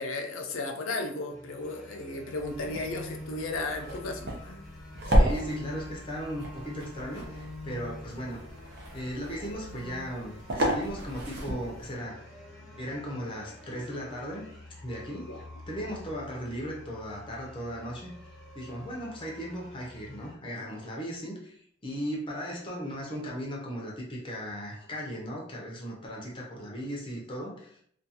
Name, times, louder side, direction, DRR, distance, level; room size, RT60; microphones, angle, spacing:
voice 1, 0.0-4.7 15.3-15.4, left 2 dB, 75° left, 3 dB, 0.5 m, -35 dB
sound 1, 1.3-20.3, left 1 dB, ahead, 0.8 m, -47 dB
sound 2, 2.4-12.0, equal, 55° right, 0.6 m, -32 dB
voice 2, 5.1-8.4 8.9-12.3 12.8-15.3 15.7-18.1 18.6-21.6 21.8-27.8, equal, 25° left, -3 dB, 0.5 m, -37 dB
2.4 x 2.3 x 2.7 m, 0.64 s
head